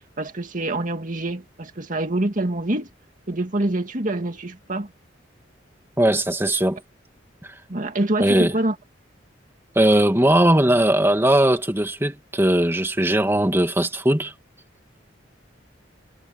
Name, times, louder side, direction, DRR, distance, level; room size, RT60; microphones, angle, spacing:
voice 1, 0.2-2.9 3.3-4.9 7.7-8.7, right 1 dB, 45° right, 2.1 m, -25 dB
voice 2, 6.0-6.8 7.4-7.5 8.2-8.5 9.8-14.3, right 1 dB, 15° right, 2.4 m, -19 dB
head